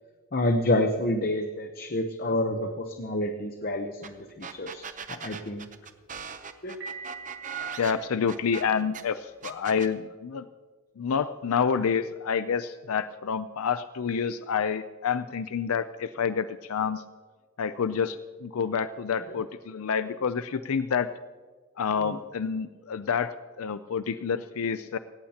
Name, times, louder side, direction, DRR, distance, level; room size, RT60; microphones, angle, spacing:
voice 1, 0.3-5.6 6.6-6.8, left 1 dB, 40° left, 5 dB, 0.8 m, -28 dB
sound 1, 4.0-4.1 4.4-9.0 9.4-9.9, right 7 dB, 35° right, 0.7 m, -39 dB
Piano, 6.8-8.8, right 5 dB, 55° right, 5.5 m, -44 dB
voice 2, 7.8-10.5 11.0-17.0 17.6-21.1 21.8-25.0, left 6 dB, 75° left, 12 dB, 0.4 m, -28 dB
17.5 x 17.0 x 2.9 m, 1.4 s
head